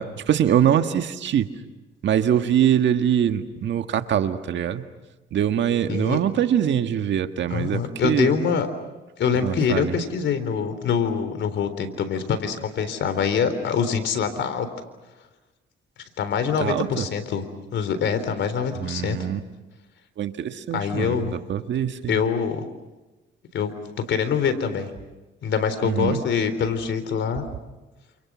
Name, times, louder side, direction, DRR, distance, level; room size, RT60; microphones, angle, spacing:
voice 1, 0.0-1.5 2.0-4.8 5.3-8.3 9.4-9.9 16.6-17.0 18.7-19.4 20.2-22.2 25.8-26.2, right 9 dB, 65° right, 7 dB, 1.7 m, -23 dB
voice 2, 5.9-6.2 7.5-8.7 9.2-14.7 16.2-17.4 17.7-19.3 20.7-21.3 22.1-22.7 23.5-23.7 24.1-24.9 25.4-27.4, left 6 dB, 70° left, 10 dB, 3.9 m, -24 dB
29.5 x 28.0 x 6.3 m, 1.1 s
cardioid pair, 90°, 20 cm